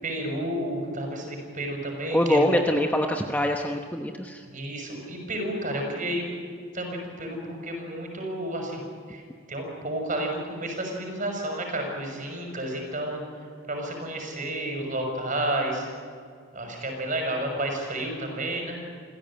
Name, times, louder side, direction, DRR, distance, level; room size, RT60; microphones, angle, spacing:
voice 1, 0.0-2.8 4.5-6.3 6.7-8.8 9.1-9.2 9.5-13.2 13.7-15.9 16.5-18.8, right 1 dB, 40° right, 2 dB, 6.3 m, -31 dB
voice 2, 2.1-4.4, left 1 dB, 10° left, 3 dB, 1.0 m, -24 dB
27.5 x 16.0 x 8.9 m, 2.1 s
head